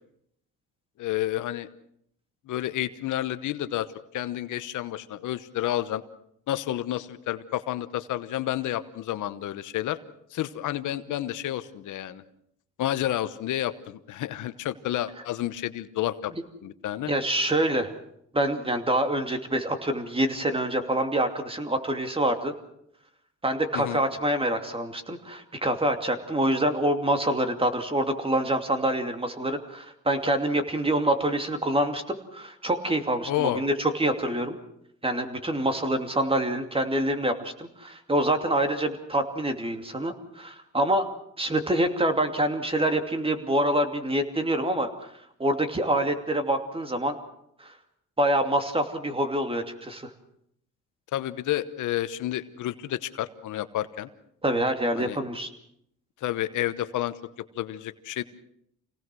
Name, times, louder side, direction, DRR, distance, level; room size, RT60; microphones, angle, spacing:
voice 1, 1.0-1.7 2.5-3.9 4.1-6.0 6.5-10.0 10.3-12.2 12.8-16.3 16.6-17.1 23.7-24.0 33.3-33.6 51.1-54.1 55.0-55.2 56.2-57.2 57.5-58.2, left 13 dB, 80° left, 12 dB, 1.1 m, -30 dB
voice 2, 17.1-17.9 18.3-22.5 23.4-34.6 35.0-41.1 41.4-45.1 45.4-47.2 47.6-47.7 48.2-50.1 54.4-55.5, right 1 dB, 20° right, 6 dB, 2.7 m, -26 dB
27.0 x 18.0 x 6.2 m, 0.73 s
cardioid pair, 90°, 30 cm